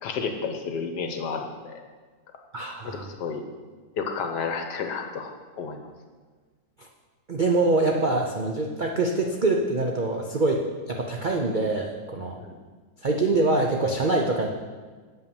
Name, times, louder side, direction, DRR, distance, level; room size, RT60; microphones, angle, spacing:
voice 1, 0.0-1.8 2.8-3.4 4.0-5.8 12.4-12.6, left 5 dB, 75° left, 5 dB, 1.5 m, -31 dB
voice 2, 2.5-3.1 6.8-6.9 7.3-12.4 13.0-14.5, right 2 dB, 80° right, 1 dB, 0.4 m, -24 dB
8.1 x 5.6 x 7.1 m, 1.4 s
omnidirectional pair, 1.9 m